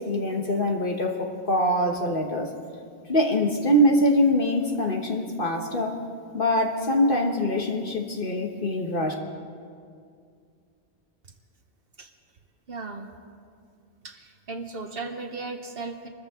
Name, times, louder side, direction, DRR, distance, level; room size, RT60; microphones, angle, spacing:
voice 1, 0.0-2.5 3.1-6.0 6.3-9.1, equal, 50° left, 2 dB, 1.4 m, -23 dB
voice 2, 12.7-13.1 14.0-16.1, right 3 dB, 55° right, 6 dB, 1.1 m, -36 dB
26.0 x 14.0 x 3.7 m, 2.2 s
omnidirectional pair, 1.2 m